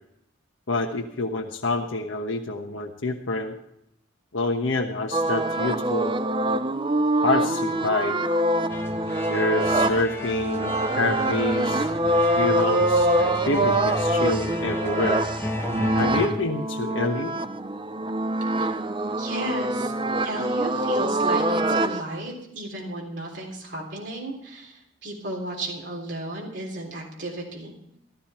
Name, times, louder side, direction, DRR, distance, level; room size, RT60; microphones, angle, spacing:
voice 1, 0.7-3.5 4.3-6.2 7.2-8.2 9.3-11.9 12.3-15.2 15.9-17.3, left 2 dB, 85° left, 1 dB, 1.2 m, -27 dB
sound 1, 5.1-22.0, right 1 dB, 25° right, 0.6 m, -24 dB
sound 2, 8.7-16.3, left 1 dB, 15° left, 1.1 m, -33 dB
voice 2, 19.2-19.9 20.2-27.7, right 1 dB, 65° right, -1 dB, 3.6 m, -34 dB
15.5 x 14.0 x 4.4 m, 0.77 s
head